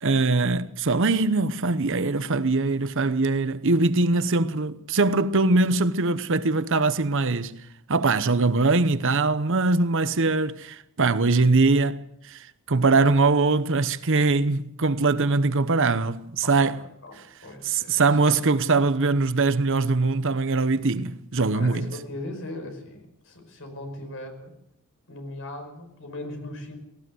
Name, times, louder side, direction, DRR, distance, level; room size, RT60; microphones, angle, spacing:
voice 1, 0.0-7.6 7.9-16.8 17.6-21.9, right 3 dB, 60° right, 0.9 m, -22 dB
voice 2, 16.4-18.5 21.5-24.6 25.1-26.8, left 1 dB, 60° left, 5.6 m, -39 dB
18.5 x 18.0 x 7.9 m
head